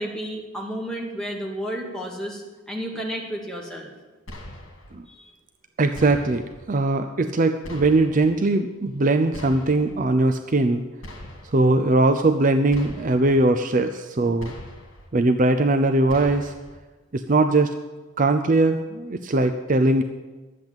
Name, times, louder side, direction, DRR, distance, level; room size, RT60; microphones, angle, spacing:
voice 1, 0.0-3.9 5.1-5.3, equal, 5° left, -1 dB, 2.0 m, -32 dB
sound 1, 4.3-5.0 5.9-6.6 7.6-8.3 9.3-10.0 11.0-11.7 12.7-13.4 14.4-15.1 16.1-16.8, left 1 dB, 70° left, 2.4 m, -41 dB
voice 2, 5.8-6.4 6.7-10.8 11.5-14.5 15.1-16.5 17.1-17.7 18.2-20.0, right 2 dB, 40° right, 7 dB, 0.5 m, -20 dB
12.0 x 7.9 x 8.9 m, 1.2 s
head